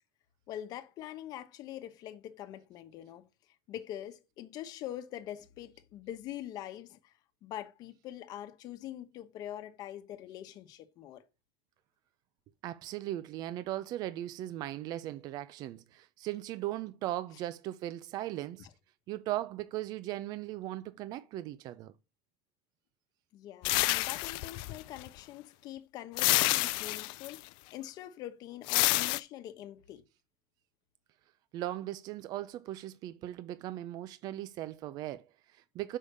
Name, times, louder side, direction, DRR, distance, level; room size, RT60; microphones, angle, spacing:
voice 1, 0.5-3.3 3.7-7.1 7.4-11.2 18.6-18.7 23.3-30.0, left 12 dB, 55° left, 1.0 m, -44 dB
voice 2, 12.6-18.7 19.1-21.9 31.5-36.0, right 14 dB, 55° right, 0.5 m, -38 dB
sound 1, 23.6-25.1 26.2-27.4 28.7-29.2, left 22 dB, 80° left, 0.4 m, -28 dB
6.5 x 5.5 x 6.6 m
cardioid pair, 155°, 8 cm